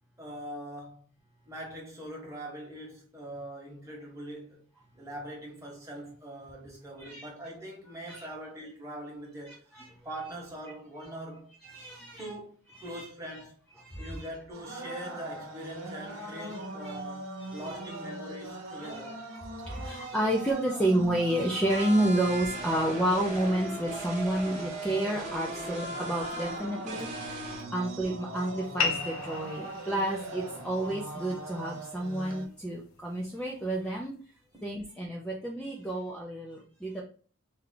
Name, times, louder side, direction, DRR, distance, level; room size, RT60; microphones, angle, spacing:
voice 1, 0.2-1.1 1.5-4.6 4.9-9.6 10.0-11.5 12.2-12.5 12.8-13.6 14.0-19.2 26.2-26.3 27.2-27.6 34.5-34.7, right 1 dB, 15° right, 1.2 m, -42 dB
voice 2, 11.6-12.2 12.9-13.0 13.8-14.1 16.5-17.0 17.4-17.5 18.8-19.0 19.6-27.4 27.7-34.1 34.6-37.0, right 1 dB, 5° left, 0.5 m, -30 dB
sound 1, 14.5-32.5, right 2 dB, 75° right, 0.9 m, -41 dB
sound 2, 21.7-27.6, right 1 dB, 35° right, 1.0 m, -39 dB
sound 3, 28.8-33.8, left 5 dB, 75° left, 0.5 m, -37 dB
3.3 x 2.4 x 3.7 m
head